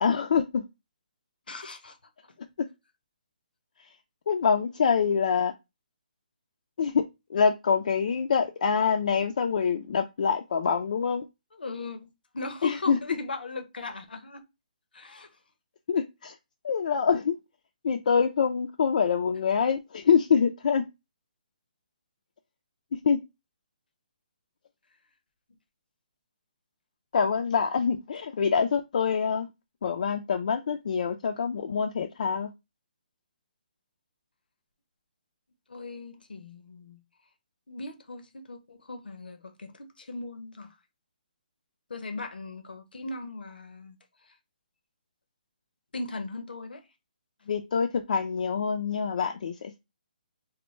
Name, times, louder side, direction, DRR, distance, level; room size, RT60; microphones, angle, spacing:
voice 1, 0.0-0.7 2.6-2.7 3.8-4.0 4.3-5.5 6.8-11.3 12.6-13.0 15.9-16.4 16.6-17.4 17.8-20.8 22.9-23.2 27.1-29.5 29.8-32.5 47.5-49.8, left 6 dB, 60° left, 0.4 m, -25 dB
voice 2, 1.5-2.0 11.6-14.4 14.9-15.3 35.7-37.0 37.7-40.7 41.9-44.0 45.9-46.8, left 3 dB, 90° left, 0.7 m, -38 dB
3.2 x 2.1 x 3.1 m
hypercardioid pair, 155°, 5 cm